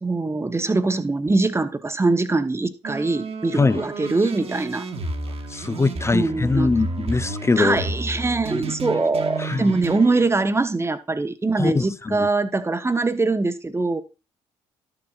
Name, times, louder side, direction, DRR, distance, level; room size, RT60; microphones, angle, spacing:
voice 1, 0.0-4.8 6.1-6.7 7.6-14.0, right 3 dB, 20° right, 0.9 m, -23 dB
sound 1, 2.8-10.2, right 2 dB, 45° right, 1.3 m, -32 dB
voice 2, 3.5-3.9 5.5-7.8 9.4-9.7 11.6-12.3, left 3 dB, 20° left, 0.5 m, -22 dB
12.5 x 7.0 x 2.4 m
figure-of-eight pair, 45°, 14 cm